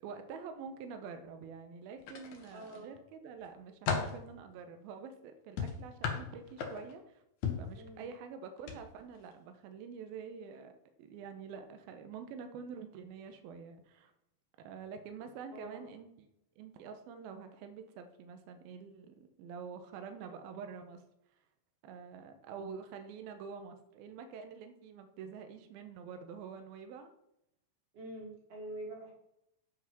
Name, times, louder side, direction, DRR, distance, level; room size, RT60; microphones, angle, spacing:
voice 1, 0.0-7.2 7.6-10.7 11.0-14.1 14.6-16.3 16.6-21.0 21.8-27.1, right 6 dB, 75° right, 7 dB, 2.7 m, -47 dB
sound 1, 2.0-2.8 3.3-4.2 5.6-7.0 7.4-7.7 8.6-8.8 9.1-9.3, left 6 dB, 60° left, 2.4 m, -36 dB
voice 2, 2.5-2.9 7.7-8.1 15.5-15.9 27.9-29.1, right 1 dB, 45° right, -1 dB, 3.0 m, -45 dB
9.5 x 5.4 x 5.9 m, 0.80 s
omnidirectional pair, 4.5 m